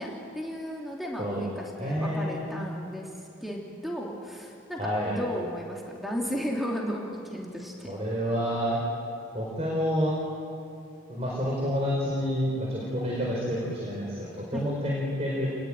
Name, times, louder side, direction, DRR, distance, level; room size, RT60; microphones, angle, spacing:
voice 1, 0.0-3.1 3.4-7.9 14.5-14.7, equal, ahead, -2 dB, 2.8 m, -34 dB
voice 2, 1.8-2.5 4.8-5.1 7.8-8.8 9.3-10.1 11.1-15.5, equal, 30° right, -4 dB, 4.9 m, -29 dB
29.0 x 20.5 x 9.1 m, 2.5 s
head